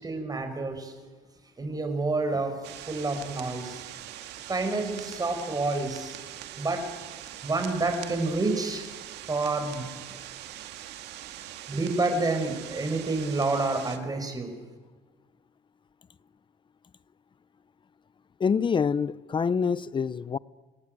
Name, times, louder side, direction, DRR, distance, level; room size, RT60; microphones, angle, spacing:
voice 1, 0.0-0.9 1.6-2.6 2.9-3.9 4.5-6.2 6.5-6.9 7.4-9.0 9.3-9.9 11.7-14.5, right 3 dB, 20° right, 5.5 m, -28 dB
sound 1, 2.6-14.0, right 12 dB, 85° right, 2.2 m, -42 dB
voice 2, 18.4-20.4, left 6 dB, 30° left, 0.7 m, -26 dB
28.5 x 18.5 x 9.3 m
cardioid pair, 110°, 17 cm